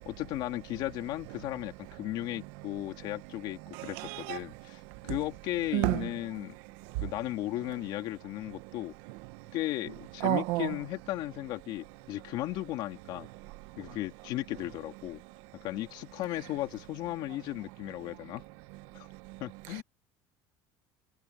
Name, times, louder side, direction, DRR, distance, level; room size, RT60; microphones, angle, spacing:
voice 1, 0.1-6.6 7.0-8.9 9.5-13.3 13.8-15.2 15.5-18.4 18.9-19.1 19.4-19.8, left 16 dB, 60° left, 2.3 m, -36 dB
voice 2, 3.7-4.4 5.1-5.2 5.7-6.1 10.2-10.7 19.7-19.8, right 21 dB, 85° right, 1.2 m, -30 dB
cardioid pair, 155°, 9 cm